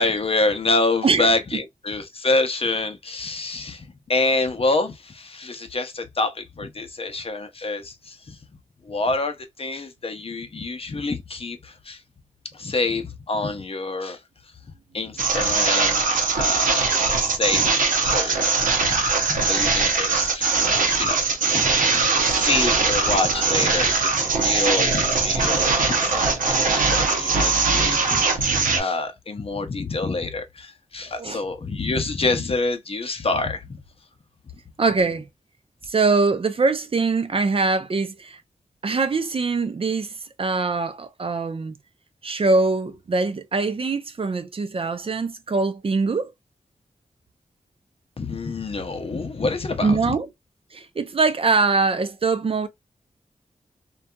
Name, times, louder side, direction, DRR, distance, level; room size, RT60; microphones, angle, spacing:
voice 1, 0.0-8.4 8.9-12.0 12.5-14.2 14.9-17.7 18.0-21.2 21.5-28.3 28.8-33.6 48.2-50.2, left 3 dB, 45° left, 0.6 m, -27 dB
sound 1, 15.2-28.8, right 4 dB, 85° right, 0.6 m, -21 dB
voice 2, 34.8-35.3 35.9-38.4 38.8-40.1 40.4-41.7 42.2-46.3 49.8-50.3 50.7-52.7, right 3 dB, 45° right, 0.5 m, -22 dB
2.6 x 2.3 x 2.2 m
cardioid pair, 55°, 13 cm